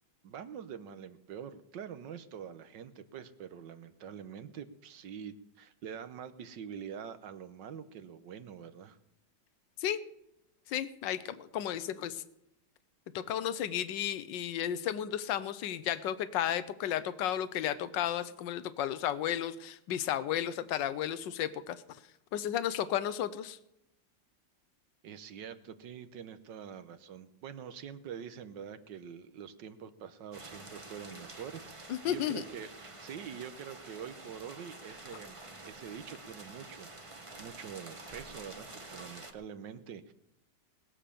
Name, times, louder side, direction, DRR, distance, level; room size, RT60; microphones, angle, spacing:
voice 1, 0.2-9.0 25.0-35.4 35.6-40.1, right 8 dB, 85° right, 11 dB, 1.6 m, -45 dB
voice 2, 10.7-12.2 13.1-21.8 22.3-23.6 31.9-32.4, left 10 dB, 85° left, 14 dB, 1.5 m, -33 dB
sound 1, 30.3-39.3, right 2 dB, 20° right, 1.1 m, -48 dB
20.5 x 7.6 x 6.8 m, 0.85 s
omnidirectional pair, 1.9 m